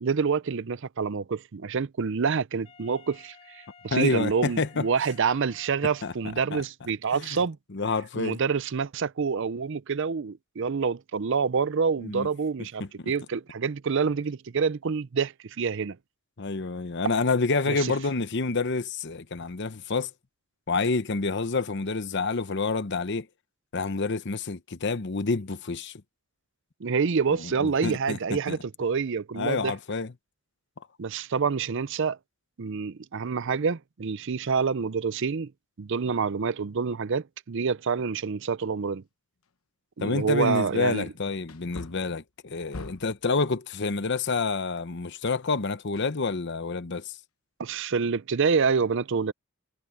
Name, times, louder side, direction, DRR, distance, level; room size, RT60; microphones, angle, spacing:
voice 1, 0.0-7.6 8.2-16.0 17.7-17.9 26.8-29.7 31.0-32.2 32.6-35.5 35.8-39.0 40.0-41.1 47.6-49.3, right 5 dB, 60° right, 0.5 m, -27 dB
Wind instrument woodwind instrument, 2.6-6.6, left 5 dB, 30° left, 4.5 m, -54 dB
voice 2, 3.9-4.9 6.0-6.1 6.5-6.6 7.7-8.4 12.0-12.3 12.8-13.1 16.4-20.1 20.7-23.3 23.7-25.9 27.4-28.6 29.4-30.1 40.0-47.2, left 3 dB, 55° left, 0.9 m, -28 dB
Wood, 39.4-39.5 40.1-40.2 41.4-43.3 45.9-46.7 47.1-47.2, left 2 dB, 85° left, 1.0 m, -43 dB
head